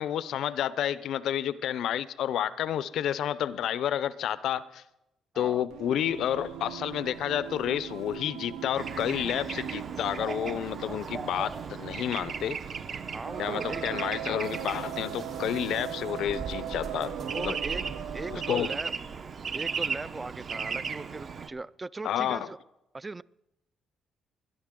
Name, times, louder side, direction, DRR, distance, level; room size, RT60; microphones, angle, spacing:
voice 1, 0.0-4.8 5.4-12.6 13.4-17.6 18.3-18.7 22.0-22.5, left 10 dB, 75° left, 17 dB, 0.5 m, -30 dB
Singing, 5.7-18.9, right 10 dB, 90° right, 0.7 m, -40 dB
sound 1, 7.1-18.4, right 5 dB, 70° right, 2.4 m, -61 dB
Bird / Traffic noise roadway noise, 8.8-21.5, right 5 dB, 50° right, 0.9 m, -37 dB
voice 2, 13.1-14.0 17.2-18.9 19.5-22.6 22.9-23.2, right 3 dB, 20° right, 19 dB, 0.3 m, -39 dB
21.0 x 10.5 x 3.7 m, 0.90 s
cardioid pair, 90°, 0 cm